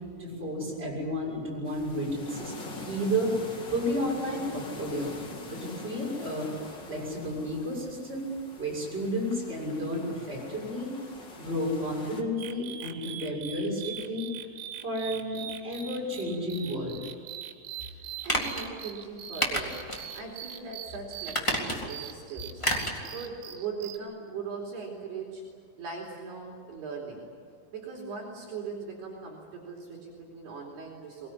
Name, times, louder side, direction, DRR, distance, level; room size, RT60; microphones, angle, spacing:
voice 1, 0.2-3.3 3.7-6.5 6.9-8.3 8.6-10.9 11.4-14.3 14.8-17.0, equal, 10° right, -3 dB, 6.6 m, -32 dB
sound 1, 1.6-12.2, left 2 dB, 45° left, 1.4 m, -44 dB
sound 2, 12.4-24.0, right 10 dB, 85° right, 4.0 m, -43 dB
voice 2, 17.8-25.4 25.8-27.3 27.7-31.3, right 5 dB, 60° right, -1 dB, 4.7 m, -40 dB
sound 3, 18.2-18.6 19.4-20.1 20.4-20.5 21.3-22.0 22.6-23.0 23.3-23.4, equal, 10° left, 1.8 m, -29 dB
23.5 x 20.5 x 9.9 m, 2.2 s
omnidirectional pair, 5.7 m